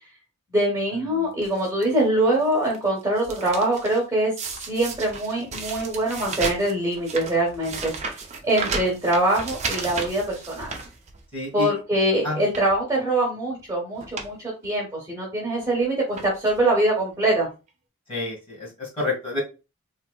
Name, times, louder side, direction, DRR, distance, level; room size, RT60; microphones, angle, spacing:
voice 1, 0.5-4.3 4.7-10.7 11.5-17.5, right 1 dB, 15° right, -3 dB, 1.0 m, -23 dB
sound 1, 1.4-1.8 2.4-2.8 3.0-4.0 4.4-11.5 11.9-12.0 12.4-12.8 13.6-13.7 14.0-14.3 14.6-14.7 15.6-15.8 16.1-16.6 17.4-17.5 17.7-17.8, right 4 dB, 30° right, 0.5 m, -34 dB
voice 2, 11.3-11.7 12.2-12.4 18.1-19.4, left 2 dB, 25° left, -3 dB, 1.6 m, -29 dB
3.4 x 2.8 x 2.2 m, 0.29 s
head